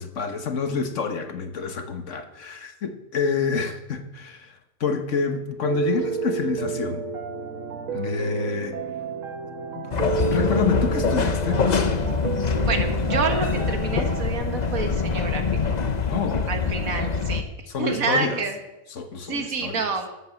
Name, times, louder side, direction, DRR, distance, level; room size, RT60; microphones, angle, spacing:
voice 1, 0.0-7.1 7.9-8.8 9.7-9.9 10.3-11.7 16.1-16.5 17.7-18.4 18.9-19.8, left 5 dB, 65° left, 7 dB, 1.4 m, -28 dB
Piano, 5.6-14.4, right 6 dB, 75° right, 1.4 m, -31 dB
sound 1, 9.9-17.4, left 5 dB, 40° left, 0.8 m, -24 dB
voice 2, 12.7-15.4 16.5-17.4 17.8-18.6 19.3-20.1, right 5 dB, 90° right, 5 dB, 1.9 m, -28 dB
12.0 x 8.0 x 7.1 m, 0.99 s
omnidirectional pair, 1.4 m